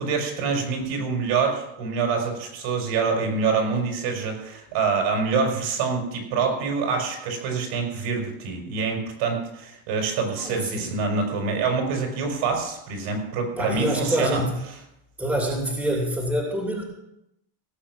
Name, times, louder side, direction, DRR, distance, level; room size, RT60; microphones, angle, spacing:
voice 1, 0.0-14.4, right 5 dB, 65° right, 2 dB, 5.0 m, -26 dB
voice 2, 10.4-10.9 13.6-14.5 15.2-16.8, right 1 dB, 5° right, 0 dB, 3.0 m, -26 dB
17.0 x 7.5 x 6.2 m, 0.83 s
cardioid pair, 150°, 45 cm